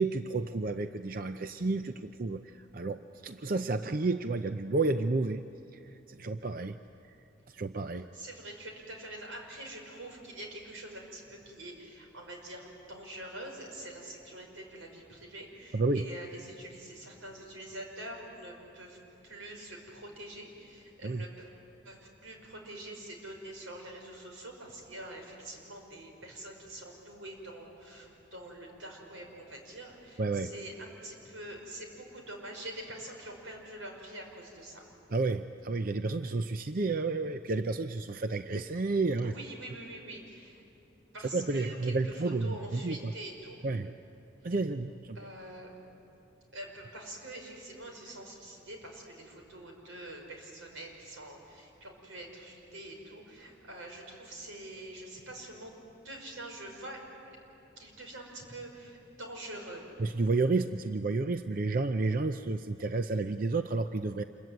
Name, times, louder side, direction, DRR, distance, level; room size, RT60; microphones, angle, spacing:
voice 1, 0.0-5.4 5.7-5.8 6.1-6.8 7.5-8.1 15.7-16.1 21.0-21.2 30.2-30.5 35.1-39.3 41.3-43.1 43.6-43.9 44.4-45.2 60.0-64.2, right 3 dB, 45° right, 9 dB, 0.5 m, -31 dB
voice 2, 8.1-19.0 19.2-21.5 21.8-34.9 39.2-40.6 41.1-43.6 45.1-45.7 46.5-57.0 57.3-57.4 57.8-59.9, right 1 dB, 90° right, 2 dB, 5.4 m, -45 dB
27.5 x 23.0 x 9.3 m, 2.8 s
head